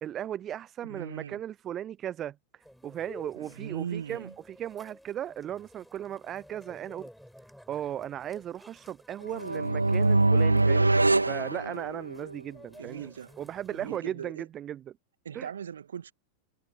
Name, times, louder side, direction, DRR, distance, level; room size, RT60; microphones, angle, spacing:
voice 1, 0.0-2.3 2.8-7.1 7.7-10.9 11.3-13.1 13.4-14.8 15.3-15.5, right 10 dB, 30° right, 0.7 m, -37 dB
voice 2, 0.9-1.4 3.4-4.3 12.8-13.3 13.7-14.5 15.2-16.1, right 8 dB, 65° right, 1.9 m, -39 dB
sound 1, 2.6-14.0, equal, ahead, 7.5 m, -53 dB
sound 2, 9.3-12.3, right 2 dB, 80° right, 0.5 m, -24 dB
figure-of-eight pair, 90°, 0 cm